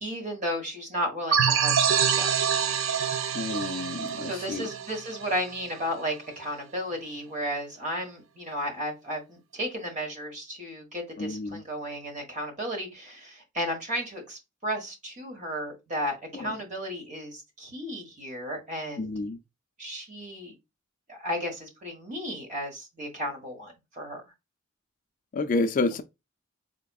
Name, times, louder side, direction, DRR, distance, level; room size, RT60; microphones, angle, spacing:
voice 1, 0.0-2.3 4.2-19.1 19.8-20.5 21.1-24.2, equal, 35° right, 1.3 m, -34 dB
sound 1, 1.3-5.8, right 7 dB, 65° right, 0.4 m, -26 dB
voice 2, 3.3-4.7 11.2-11.6 16.3-16.5 19.0-19.4 25.3-26.0, left 3 dB, 40° left, 0.3 m, -29 dB
4.4 x 3.4 x 2.3 m
head